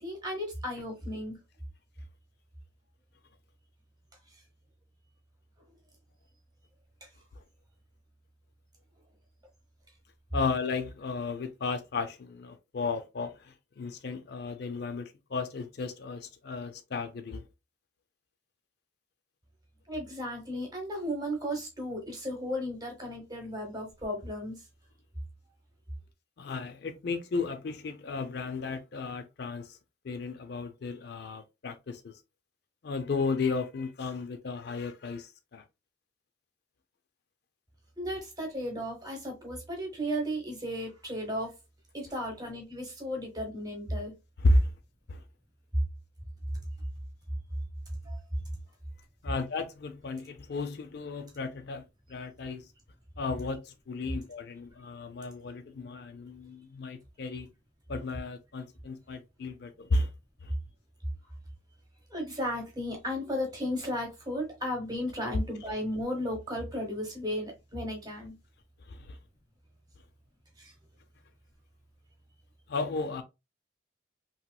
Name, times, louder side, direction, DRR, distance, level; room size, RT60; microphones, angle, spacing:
voice 1, 0.0-1.4 7.0-7.1 19.9-24.6 38.0-41.5 41.9-44.1 48.0-48.2 62.1-68.4 70.6-70.7, equal, 20° right, 1.0 m, -35 dB
voice 2, 10.3-17.5 26.4-29.8 30.0-32.2 32.8-35.6 44.4-44.7 45.1-45.2 49.2-52.7 53.2-57.5 57.9-60.1 60.4-60.5 68.8-69.2 72.7-73.2, left 3 dB, 55° left, 0.4 m, -33 dB
3.0 x 2.9 x 2.2 m
head